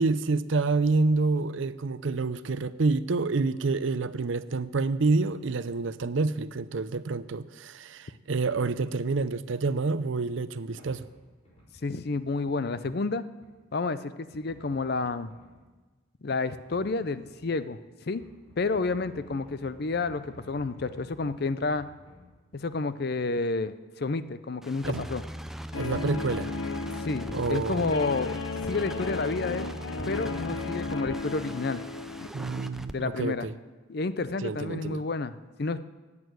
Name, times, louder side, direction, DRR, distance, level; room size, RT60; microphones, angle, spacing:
voice 1, 0.0-11.1 24.8-25.0 25.7-26.5 27.3-27.9 32.3-33.5 34.4-35.0, right 3 dB, 65° right, 15 dB, 0.5 m, -28 dB
sound 1, 10.3-10.4 10.8-12.0 12.4-12.8 13.4-13.5 14.3-15.6 16.5-17.5 18.0-22.3, left 1 dB, 30° left, 4.1 m, -53 dB
voice 2, 11.8-13.2 13.7-15.3 16.2-17.8 18.1-18.2 18.6-21.9 22.5-25.2 27.0-28.3 28.7-29.7 30.1-31.8 32.9-33.5 33.9-35.8, left 3 dB, 50° left, 14 dB, 0.5 m, -30 dB
sound 2, 24.6-32.9, equal, ahead, 0.4 m, -39 dB
Guitar, 25.7-32.3, left 4 dB, 85° left, 0.8 m, -35 dB
11.0 x 8.6 x 9.4 m, 1.3 s
head